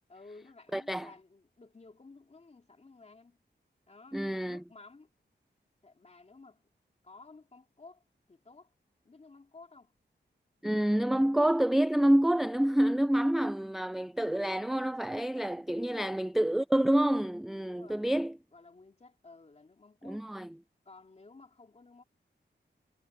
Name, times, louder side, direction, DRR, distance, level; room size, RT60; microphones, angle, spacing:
voice 1, 0.1-3.4 3.9-5.1 5.8-6.7 7.0-8.0 8.3-8.7 9.0-9.9 15.7-16.1 17.6-18.2 18.5-20.3 20.9-22.0, left 3 dB, 35° left, 2.5 m, -55 dB
voice 2, 0.7-1.1 4.1-4.6 10.6-18.4 20.0-20.5, right 1 dB, ahead, 0.3 m, -28 dB
wide cardioid pair, 130°, 19 cm